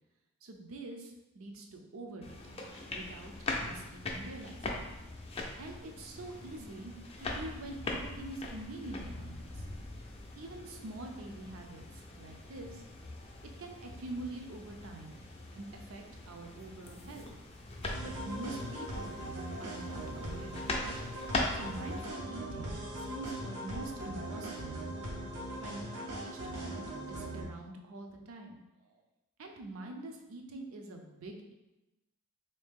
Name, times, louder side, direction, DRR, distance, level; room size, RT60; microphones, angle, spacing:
voice 1, 0.4-2.6 2.9-3.3 3.6-4.9 5.6-6.9 7.2-9.6 10.4-12.8 13.6-15.2 15.6-17.3 18.0-19.2 19.6-20.9 21.5-24.8 25.6-29.0 29.4-31.5, right 2 dB, 60° right, 3 dB, 0.5 m, -45 dB
sound 1, 2.2-22.1, left 2 dB, 25° left, 0.4 m, -41 dB
sound 2, 17.8-27.4, right 1 dB, 90° right, 0.9 m, -40 dB
3.5 x 2.7 x 3.5 m, 0.99 s
head